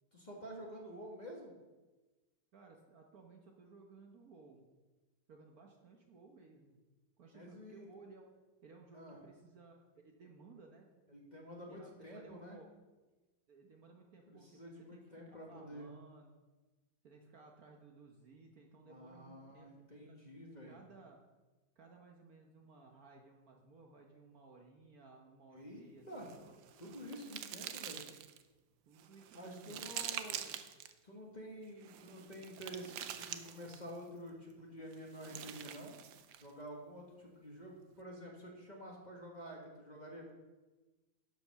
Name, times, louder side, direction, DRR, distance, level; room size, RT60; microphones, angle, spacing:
voice 1, 0.1-1.5 7.3-7.9 8.9-9.2 11.1-12.6 14.3-15.9 18.8-20.8 25.5-26.3 26.8-28.0 29.3-30.4 31.0-35.9 36.4-40.3, equal, 25° left, -2 dB, 1.5 m, -49 dB
voice 2, 2.5-4.7 5.3-6.8 7.2-8.3 8.6-10.9 11.7-12.7 13.5-16.3 17.0-20.2 20.6-21.2 21.8-26.6 28.9-29.8 30.2-30.6, right 3 dB, 55° right, 1 dB, 1.3 m, -59 dB
sound 1, 26.1-28.4 29.0-30.9 31.8-34.0 34.9-36.5, right 10 dB, 70° right, 1.1 m, -46 dB
12.0 x 5.3 x 5.7 m, 1.2 s
omnidirectional pair, 2.1 m